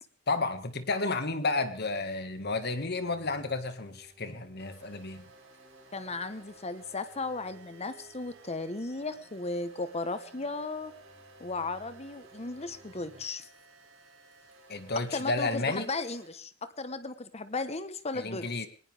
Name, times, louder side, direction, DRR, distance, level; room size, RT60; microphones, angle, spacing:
voice 1, 0.3-5.3 14.7-15.9 18.1-18.7, left 3 dB, 55° left, 9 dB, 2.0 m, -32 dB
sound 1, 0.8-13.3, right 1 dB, 30° right, 5.0 m, -59 dB
sound 2, 4.6-16.3, right 3 dB, 80° right, 6.2 m, -56 dB
voice 2, 5.9-10.9 11.4-13.4 15.1-16.5 16.8-18.7, left 3 dB, 30° left, 12 dB, 1.3 m, -35 dB
20.5 x 19.0 x 3.6 m, 0.38 s
head